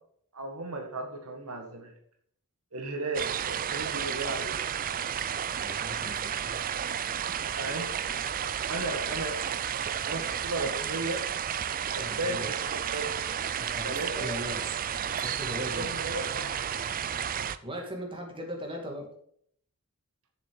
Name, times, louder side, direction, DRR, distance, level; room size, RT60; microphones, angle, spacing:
voice 1, 0.3-1.9 2.7-4.7 7.6-7.9 8.4-9.6 9.8-11.2 11.9-13.1 13.8-14.3 15.6-16.5, right 2 dB, 75° right, 3 dB, 1.8 m, -35 dB
sound 1, 3.1-17.6, right 8 dB, 40° right, 0.5 m, -32 dB
voice 2, 5.5-6.6 12.0-12.5 13.6-14.6 15.0-15.9 17.6-19.1, equal, 25° right, 0 dB, 2.5 m, -39 dB
7.3 x 7.0 x 6.9 m, 0.65 s
head